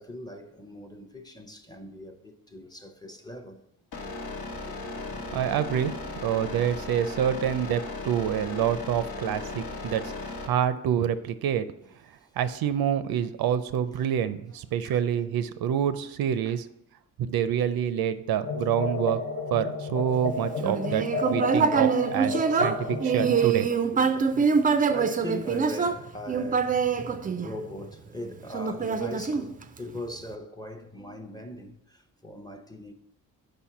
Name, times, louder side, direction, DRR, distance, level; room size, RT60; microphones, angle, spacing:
voice 1, 0.0-3.6 4.5-5.4 6.1-6.2 6.7-6.8 12.2-12.3 14.7-15.1 16.5-16.6 20.5-21.0 23.8-23.9 24.9-26.8 27.1-32.9, left 1 dB, 10° left, 0.6 m, -41 dB
sound 1, 3.9-10.5, left 2 dB, 75° left, 1.2 m, -36 dB
voice 2, 5.3-5.9 6.2-10.1 10.4-11.7 12.4-16.7 17.2-19.2 19.5-23.7 24.3-24.5, right 9 dB, 80° right, 0.5 m, -27 dB
sound 2, 18.4-23.4, left 3 dB, 55° left, 0.8 m, -32 dB
Human voice, 20.6-27.9 28.5-30.0, right 5 dB, 25° right, 0.3 m, -25 dB
5.2 x 4.3 x 5.8 m
cardioid pair, 110°, 36 cm